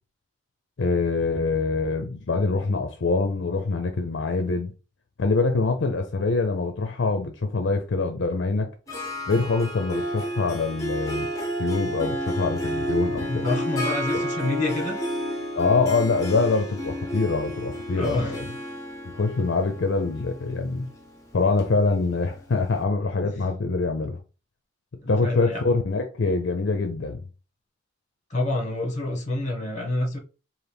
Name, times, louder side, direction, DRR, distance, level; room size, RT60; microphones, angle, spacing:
voice 1, 0.8-4.7 5.2-8.7 9.3-11.3 11.6-13.5 15.6-18.5 19.1-20.9 21.3-24.2 25.1-27.2, left 3 dB, 65° left, 0.5 m, -24 dB
Harp, 8.9-22.4, equal, 15° left, 0.9 m, -31 dB
voice 2, 13.3-15.0 17.9-18.4 25.0-25.6 28.3-30.2, left 1 dB, 40° left, 1.1 m, -27 dB
4.0 x 2.5 x 3.4 m
head